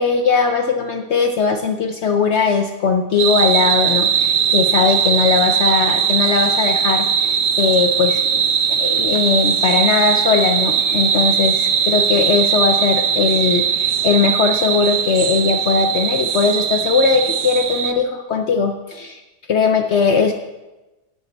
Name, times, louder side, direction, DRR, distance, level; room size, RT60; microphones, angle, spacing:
voice 1, 0.0-8.4 8.8-19.2 19.5-20.3, left 5 dB, 65° left, 5 dB, 0.6 m, -19 dB
sound 1, 3.2-17.9, right 7 dB, 60° right, 0.6 m, -19 dB
9.5 x 8.9 x 4.2 m, 1.1 s
omnidirectional pair, 1.7 m